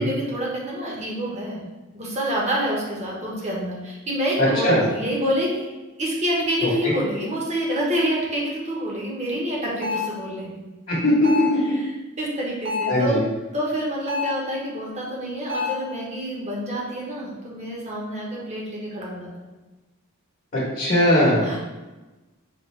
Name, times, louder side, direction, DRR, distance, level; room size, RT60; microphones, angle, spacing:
voice 1, 0.0-1.6 1.9-5.7 6.0-10.6 11.6-11.9 12.2-13.2 13.5-19.5 21.4-21.6, equal, 30° right, -3 dB, 0.9 m, -27 dB
voice 2, 4.4-4.8 6.6-6.9 10.9-11.8 12.9-13.2 20.5-21.4, left 1 dB, 40° left, -8 dB, 0.9 m, -20 dB
sound 1, 9.8-10.2 11.2-11.6 12.6-13.1 14.1-14.4 15.5-15.9, left 5 dB, 55° right, 0.7 m, -27 dB
5.1 x 2.5 x 3.1 m, 1.1 s
head